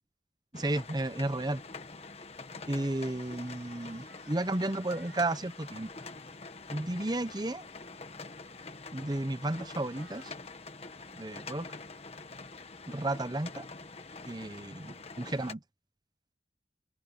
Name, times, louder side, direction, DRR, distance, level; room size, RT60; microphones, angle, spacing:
sound 1, 0.5-15.5, left 3 dB, 35° left, 1.5 m, -46 dB
voice 1, 0.5-1.6 2.7-5.9 6.7-7.6 8.9-10.3 11.1-11.7 12.9-13.7 14.3-15.6, right 2 dB, 25° right, 0.9 m, -33 dB
sound 2, 2.8-6.2 9.5-10.3, right 5 dB, 85° right, 7.0 m, -58 dB
open air
head